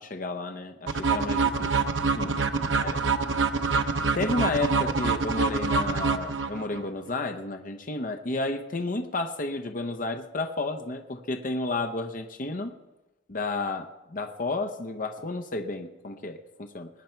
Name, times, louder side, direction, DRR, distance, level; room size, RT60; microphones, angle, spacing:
voice 1, 0.0-1.7 2.1-2.3 2.8-3.0 4.1-12.7 13.3-16.9, left 2 dB, 45° left, 6 dB, 0.8 m, -32 dB
sound 1, 0.9-6.8, right 4 dB, 75° right, 0.8 m, -26 dB
20.5 x 9.2 x 4.5 m, 1.0 s
head